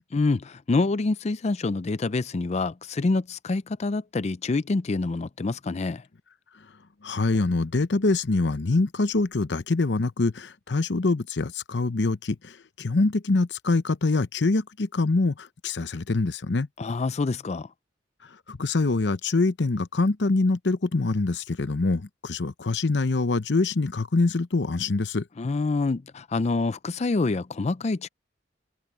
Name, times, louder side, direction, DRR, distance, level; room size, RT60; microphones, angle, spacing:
voice 1, 0.1-6.0 16.8-17.7 25.4-28.1, left 3 dB, 40° left, 0.4 m, -26 dB
voice 2, 7.0-16.7 18.5-25.3, left 3 dB, 75° left, 0.8 m, -24 dB
head